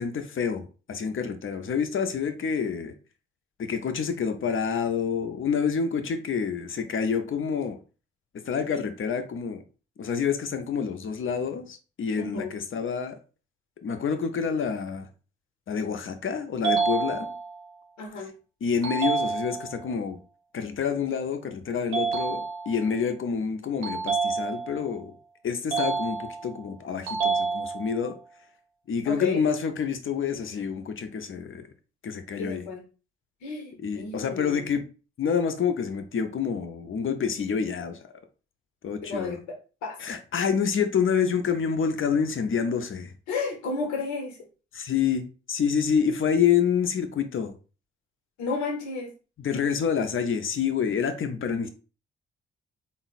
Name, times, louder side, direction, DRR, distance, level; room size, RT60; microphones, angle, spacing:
voice 1, 0.0-2.9 3.6-7.8 8.5-9.6 10.0-13.2 13.8-15.1 15.7-17.3 18.6-20.2 20.5-25.1 25.4-28.1 28.9-31.7 32.0-32.7 33.8-34.8 35.2-38.0 38.8-39.4 40.0-43.1 44.7-47.5 49.4-51.7, left 6 dB, 45° left, 0.7 m, -28 dB
voice 2, 12.2-12.6 18.0-18.3 29.1-29.4 32.4-32.8 33.4-34.7 39.0-39.4 39.8-40.0 43.3-44.3 48.4-49.1, left 4 dB, 70° left, 0.9 m, -32 dB
sound 1, 16.6-17.7 18.8-19.8 21.9-22.9 23.8-24.9 25.7-26.6 27.1-28.1, right 5 dB, 85° right, 1.0 m, -28 dB
3.7 x 2.0 x 4.0 m
hypercardioid pair, 40°, 29 cm